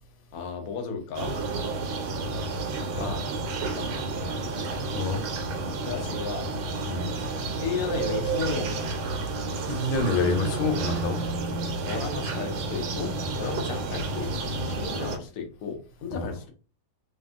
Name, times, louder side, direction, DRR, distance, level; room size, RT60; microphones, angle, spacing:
voice 1, 0.3-1.4 2.9-4.1 5.8-6.5 7.6-8.9 11.8-16.5, left 5 dB, 65° left, 3 dB, 0.9 m, -34 dB
sound 1, 1.1-15.2, right 3 dB, 80° right, 1.4 m, -31 dB
voice 2, 9.6-11.2 16.1-16.3, left 3 dB, 85° left, 6 dB, 1.6 m, -27 dB
3.3 x 2.6 x 2.4 m, 0.36 s
omnidirectional pair, 2.2 m